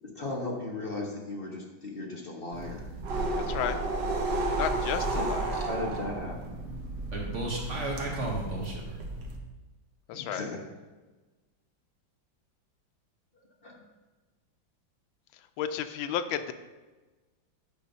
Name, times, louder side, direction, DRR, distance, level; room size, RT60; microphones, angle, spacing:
voice 1, 0.0-2.8 5.1-5.3 5.7-6.6 10.1-10.6 13.6-13.8, left 2 dB, 35° left, -1 dB, 1.0 m, -36 dB
sound 1, 2.5-9.4, right 2 dB, 65° right, 1.6 m, -32 dB
voice 2, 3.4-3.8 4.6-5.6 10.1-10.5 15.3-16.5, left 10 dB, 85° left, 10 dB, 1.4 m, -33 dB
voice 3, 7.1-9.0, right 2 dB, 40° right, -1 dB, 1.4 m, -34 dB
8.6 x 5.0 x 5.4 m, 1.2 s
omnidirectional pair, 2.1 m